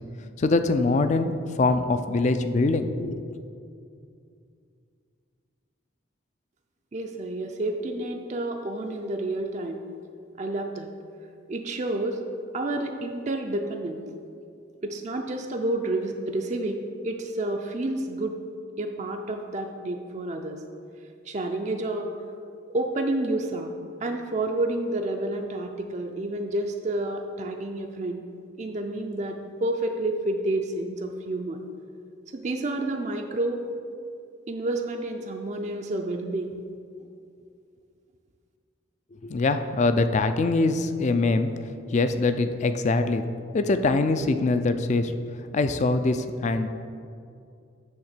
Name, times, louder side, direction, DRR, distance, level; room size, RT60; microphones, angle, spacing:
voice 1, 0.4-3.2 39.2-41.5 41.9-43.2 43.5-45.1 45.5-46.7, left 3 dB, 35° left, 9 dB, 0.3 m, -23 dB
voice 2, 6.9-9.8 10.4-10.9 11.5-12.2 12.5-14.0 14.8-18.4 18.8-20.6 21.3-22.1 22.7-23.7 24.0-28.2 28.6-31.6 32.3-33.6 34.5-36.6, right 2 dB, 35° right, 3 dB, 0.4 m, -29 dB
8.7 x 3.5 x 6.6 m, 2.4 s
head